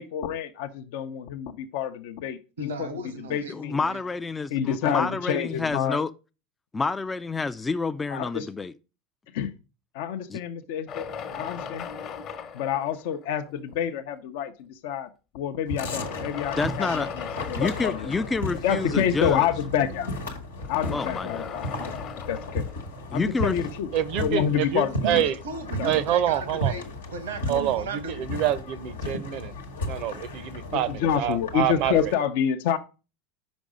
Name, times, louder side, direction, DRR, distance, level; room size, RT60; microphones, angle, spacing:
voice 1, 0.0-2.9 3.3-3.7 4.5-6.0 8.1-8.5 9.3-9.5 9.9-11.1 11.4-11.9 12.5-15.1 15.3-17.1 17.5-18.1 18.6-20.1 20.7-22.0 22.3-22.6 23.1-23.9 24.2-25.2 25.8-25.9 30.7-32.8, left 9 dB, 65° left, 0.6 m, -28 dB
voice 2, 2.6-4.0 24.6-24.7 25.0-26.8 27.1-28.3, right 3 dB, 85° right, 1.2 m, -35 dB
voice 3, 3.5-6.1 6.7-8.7 10.3-10.4 16.6-17.1 17.5-19.5 20.9-21.6 23.1-23.6, left 4 dB, 15° left, 0.3 m, -28 dB
sound 1, 10.9-13.6 14.4-14.5 15.6-18.6 20.5-23.6, left 6 dB, 45° left, 1.0 m, -38 dB
sound 2, 15.7-32.1, left 1 dB, 85° left, 1.1 m, -35 dB
voice 4, 23.9-25.3 25.8-26.7 27.5-29.5 29.8-32.1, right 11 dB, 55° right, 0.6 m, -27 dB
5.2 x 5.2 x 4.9 m
hypercardioid pair, 90°, 0 cm